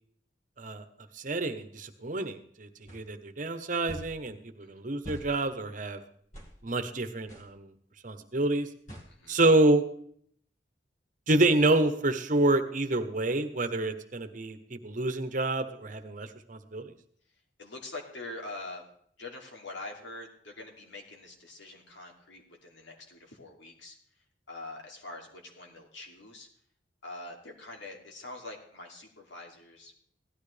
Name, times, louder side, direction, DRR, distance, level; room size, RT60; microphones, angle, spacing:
voice 1, 1.1-6.0 6.6-7.7 8.0-8.7 9.3-9.8 11.3-16.9, right 2 dB, 45° right, 8 dB, 1.0 m, -28 dB
sound 1, 2.9-3.0 3.9-4.1 5.0-5.3 6.3-6.5 7.3-7.5 8.9-9.1, equal, 45° left, 2.2 m, -42 dB
voice 2, 9.1-9.4 17.6-18.9 19.2-24.0 24.5-26.5 27.0-29.9, left 2 dB, 90° left, 1 dB, 2.8 m, -44 dB
16.5 x 12.0 x 3.4 m, 0.62 s
head